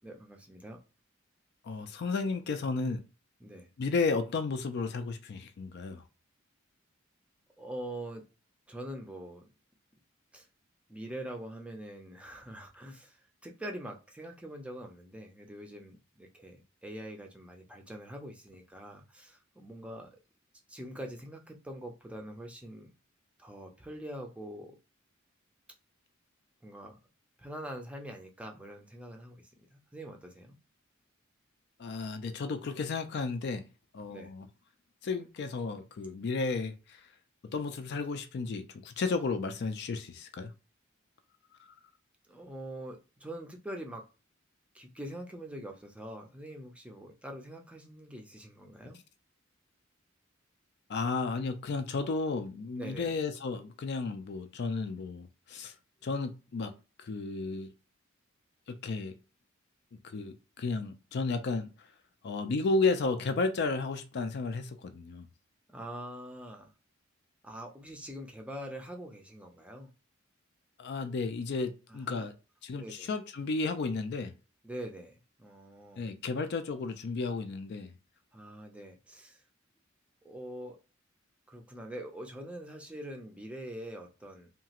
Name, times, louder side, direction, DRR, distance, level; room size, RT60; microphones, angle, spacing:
voice 1, 0.0-0.8 3.4-3.7 7.6-8.2 8.7-9.4 10.3-10.5 10.9-13.2 13.4-20.1 20.7-22.9 23.4-24.8 26.6-27.0 27.4-29.4 29.7-30.6 34.1-34.3 42.3-44.0 44.7-49.0 52.8-53.1 65.7-66.7 67.4-69.9 71.9-72.3 72.8-73.1 74.6-76.1 78.3-79.4 80.2-80.8 81.5-84.5, right 1 dB, 5° right, 0.5 m, -44 dB
voice 2, 1.6-3.0 3.8-6.0 31.8-33.6 33.9-34.5 35.0-36.7 37.5-40.5 50.9-55.7 56.0-56.7 57.0-57.7 58.7-59.1 60.1-61.7 62.2-65.3 70.8-72.3 72.6-74.3 76.0-77.9, left 4 dB, 55° left, 0.4 m, -33 dB
2.9 x 2.4 x 2.8 m
head